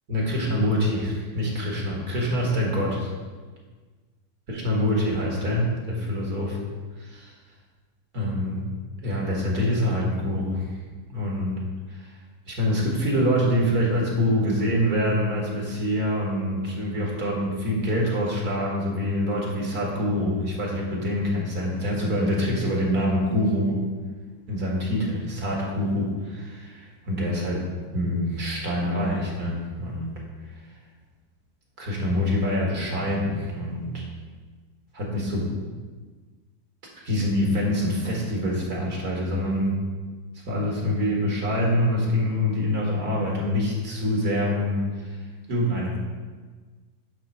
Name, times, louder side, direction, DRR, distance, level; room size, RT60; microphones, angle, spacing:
voice 1, 0.1-3.1 4.5-6.6 7.0-7.3 8.1-8.7 9.0-10.7 11.1-11.6 11.9-12.1 12.5-23.8 24.5-27.6 27.9-30.2 31.8-34.0 34.9-35.5 37.0-39.8 40.5-45.2 45.5-46.0, left 1 dB, 65° right, -3 dB, 2.3 m, -25 dB
10.5 x 3.9 x 5.6 m, 1.4 s
omnidirectional pair, 1.7 m